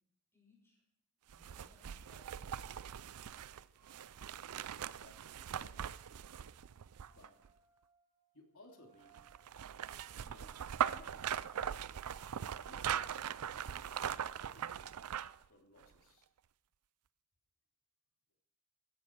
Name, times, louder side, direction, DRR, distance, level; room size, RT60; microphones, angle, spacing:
voice 1, 0.3-0.8 1.3-2.5 2.7-3.2, left 2 dB, 10° left, -2 dB, 6.1 m, -68 dB
sound 1, 1.3-7.5 9.1-15.4 15.8-15.9, right 9 dB, 85° right, 0.5 m, -41 dB
sound 2, 3.7-4.0 6.9-14.3, right 6 dB, 15° right, 4.8 m, -72 dB
voice 2, 4.9-5.9 7.1-7.4 8.3-9.1 10.1-11.3 12.7-14.2 14.5-14.9 15.5-16.3, left 1 dB, 65° left, 2 dB, 3.1 m, -62 dB
16.5 x 13.5 x 4.6 m, 0.83 s
head